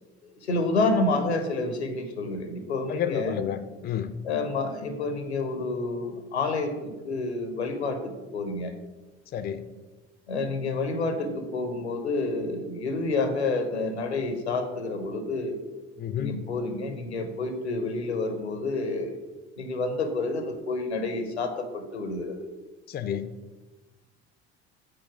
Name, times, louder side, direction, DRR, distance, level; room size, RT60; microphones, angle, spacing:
voice 1, 0.4-3.4 4.2-8.7 10.3-15.6 16.2-19.2 19.6-22.5, left 3 dB, 90° left, 7 dB, 0.8 m, -29 dB
voice 2, 2.9-4.1 9.3-9.6 16.0-16.4 22.9-23.3, left 9 dB, 30° left, 11 dB, 0.5 m, -30 dB
5.0 x 4.3 x 6.0 m, 1.2 s
hypercardioid pair, 65°, 32 cm